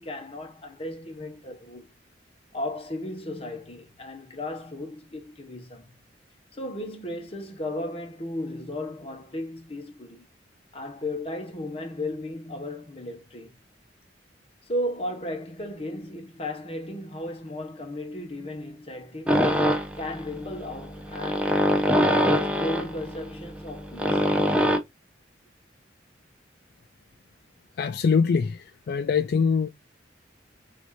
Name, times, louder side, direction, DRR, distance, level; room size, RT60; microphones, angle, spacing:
voice 1, 0.0-1.9 2.5-5.9 6.5-10.2 10.7-13.5 14.6-19.5 20.0-21.7 22.0-24.2, left 1 dB, 35° left, 1.1 m, -35 dB
sound 1, 19.3-24.8, equal, 5° right, 0.7 m, -24 dB
voice 2, 27.8-29.7, left 5 dB, 60° left, 0.3 m, -23 dB
6.2 x 2.7 x 3.1 m
head